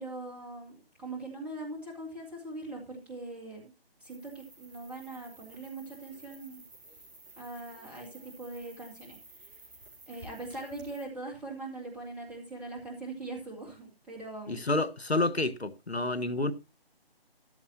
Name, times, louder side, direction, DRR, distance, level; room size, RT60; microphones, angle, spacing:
voice 1, 0.0-3.7 4.0-6.6 7.4-9.5 10.1-14.6, right 2 dB, 5° right, 2.2 m, -41 dB
sound 1, 4.0-11.0, right 2 dB, 20° right, 4.3 m, -53 dB
voice 2, 14.5-16.5, left 2 dB, 90° left, 1.5 m, -29 dB
14.0 x 11.0 x 2.8 m
figure-of-eight pair, 150°, 31 cm